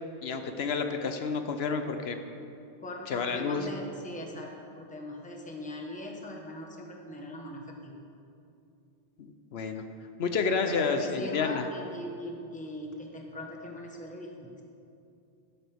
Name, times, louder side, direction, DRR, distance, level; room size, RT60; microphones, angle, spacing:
voice 1, 0.2-2.2 3.1-3.7 9.2-9.9 10.2-11.6, left 5 dB, 75° left, 7 dB, 0.9 m, -30 dB
voice 2, 2.8-8.0 10.7-14.5, left 1 dB, 5° left, 0 dB, 1.1 m, -40 dB
12.5 x 11.5 x 3.5 m, 2.6 s
omnidirectional pair, 1.1 m